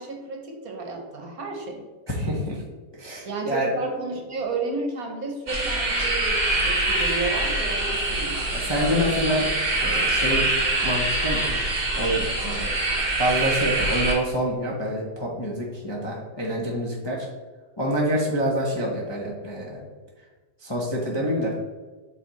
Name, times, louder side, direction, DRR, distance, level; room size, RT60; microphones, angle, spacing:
voice 1, 0.0-1.8 3.2-8.5, right 3 dB, 60° right, 2 dB, 1.4 m, -32 dB
voice 2, 2.1-2.6 2.9-3.7 8.5-9.5 9.8-10.4 10.8-11.6 11.9-12.7 13.2-17.3 17.8-19.8 20.6-21.5, equal, 20° left, -4 dB, 0.7 m, -26 dB
sound 1, 5.5-14.1, right 2 dB, 30° right, 1.1 m, -24 dB
7.4 x 3.4 x 4.1 m, 1.3 s
omnidirectional pair, 1.8 m